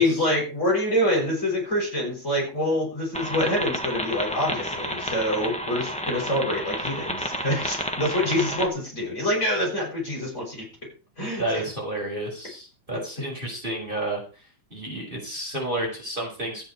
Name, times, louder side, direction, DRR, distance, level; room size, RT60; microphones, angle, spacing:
voice 1, 0.0-10.7 11.2-11.6, left 1 dB, 35° left, -2 dB, 7.3 m, -26 dB
sound 1, 3.1-8.7, equal, 5° left, 1.2 m, -31 dB
voice 2, 11.4-14.4 14.7-16.7, right 1 dB, 25° right, -2 dB, 5.4 m, -31 dB
13.5 x 10.0 x 4.7 m, 0.34 s
omnidirectional pair, 2.3 m